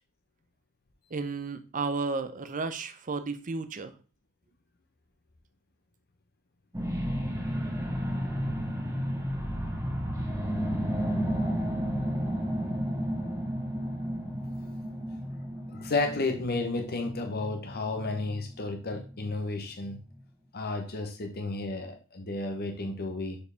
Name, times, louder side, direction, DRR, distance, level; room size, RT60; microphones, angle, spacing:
voice 1, 1.1-3.9, right 4 dB, 40° right, 11 dB, 0.6 m, -33 dB
sound 1, 6.7-19.4 19.9-20.0, equal, 15° right, 1.2 m, -32 dB
voice 2, 15.7-20.0 20.5-23.4, left 3 dB, 50° left, 5 dB, 0.9 m, -32 dB
6.7 x 4.7 x 3.4 m, 0.35 s
head